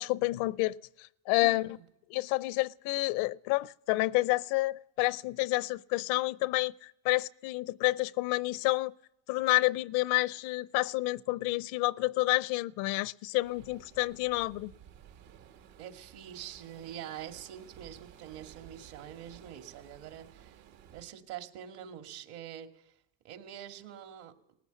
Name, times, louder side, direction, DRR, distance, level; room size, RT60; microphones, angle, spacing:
voice 1, 0.0-1.8 2.1-8.9 9.3-14.7, left 20 dB, 75° left, 0.6 m, -29 dB
voice 2, 1.4-1.8 15.8-20.6 20.9-22.9 23.2-24.3, right 10 dB, 65° right, 2.4 m, -45 dB
sound 1, 13.4-21.0, right 9 dB, 80° right, 2.6 m, -55 dB
19.5 x 14.5 x 9.3 m
cardioid pair, 145°, 41 cm